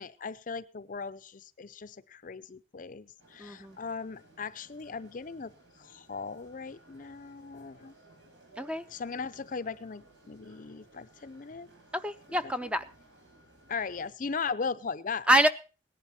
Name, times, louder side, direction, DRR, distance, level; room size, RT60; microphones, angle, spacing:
voice 1, 0.0-5.5 5.8-7.9 8.9-11.7 13.7-15.3, left 5 dB, 45° left, 15 dB, 0.6 m, -38 dB
sound 1, 3.2-14.1, right 1 dB, 85° right, 5.5 m, -59 dB
voice 2, 3.4-3.8 8.6-8.8 11.9-12.8 15.3-15.5, equal, 5° right, 11 dB, 0.6 m, -26 dB
18.0 x 11.0 x 4.2 m, 0.35 s
head